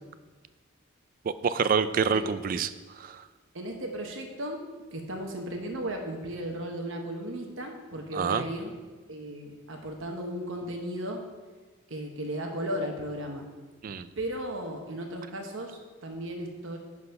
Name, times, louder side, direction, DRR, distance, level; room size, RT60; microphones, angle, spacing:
voice 1, 1.2-3.2 8.1-8.5 13.8-14.1, right 6 dB, 40° right, 13 dB, 0.3 m, -27 dB
voice 2, 3.5-4.6 4.9-8.7 9.1-11.2 11.9-13.5 14.2-16.8, right 1 dB, 65° right, 3 dB, 1.0 m, -35 dB
10.5 x 4.0 x 5.8 m, 1.4 s
head